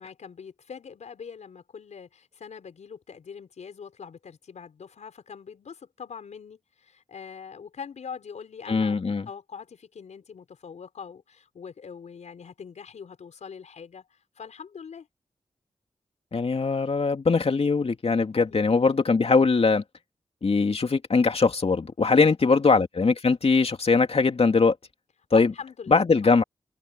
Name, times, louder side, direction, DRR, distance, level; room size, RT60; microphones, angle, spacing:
voice 1, 0.0-9.0 9.3-15.1 18.4-18.8 22.1-22.6 25.3-26.3, left 6 dB, 80° left, 5.5 m, -42 dB
voice 2, 8.7-9.3 16.3-19.8 20.4-24.8 25.3-25.5 25.9-26.4, left 4 dB, 55° left, 2.7 m, -21 dB
cardioid pair, 40°, 12 cm